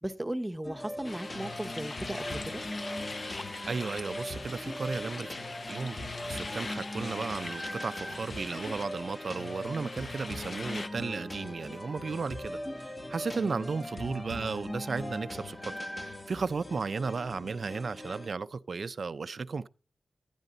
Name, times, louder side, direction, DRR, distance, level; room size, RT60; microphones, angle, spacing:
voice 1, 0.0-2.6 13.3-13.7, right 1 dB, 10° right, 1.1 m, -36 dB
sound 1, 0.6-18.3, left 1 dB, 20° left, 1.6 m, -40 dB
sound 2, 1.0-10.9, left 3 dB, 45° left, 0.9 m, -41 dB
voice 2, 3.7-5.4 5.7-6.0 6.3-15.7 16.0-19.7, right 4 dB, 60° right, 0.5 m, -34 dB
12.0 x 9.9 x 3.9 m
wide cardioid pair, 90°, 0 cm